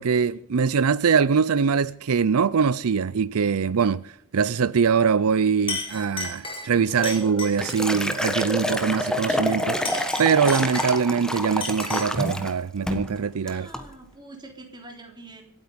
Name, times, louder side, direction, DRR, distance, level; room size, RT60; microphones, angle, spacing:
voice 1, 0.0-13.7, right 6 dB, 75° right, 0.5 m, -23 dB
Chink clink, 5.2-5.4 5.7-7.9 9.7-11.2 11.6-12.2, left 3 dB, 25° left, 4.6 m, -34 dB
Liquid, 7.0-12.5 12.9-13.1 13.5-13.8, left 1 dB, 5° left, 1.3 m, -28 dB
voice 2, 13.4-15.4, right 2 dB, 20° right, 3.5 m, -44 dB
26.0 x 8.9 x 5.2 m
head